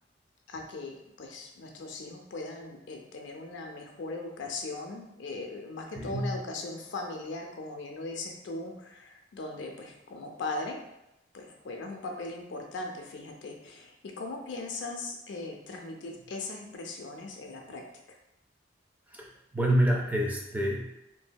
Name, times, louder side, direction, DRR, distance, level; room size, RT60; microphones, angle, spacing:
voice 1, 0.5-10.8 11.3-17.8 18.1-18.2, left 3 dB, 85° left, 2 dB, 0.5 m, -39 dB
voice 2, 5.9-6.3 19.1-19.3 19.5-20.9, right 1 dB, 10° right, 0 dB, 0.3 m, -27 dB
2.7 x 2.6 x 2.2 m, 0.88 s
head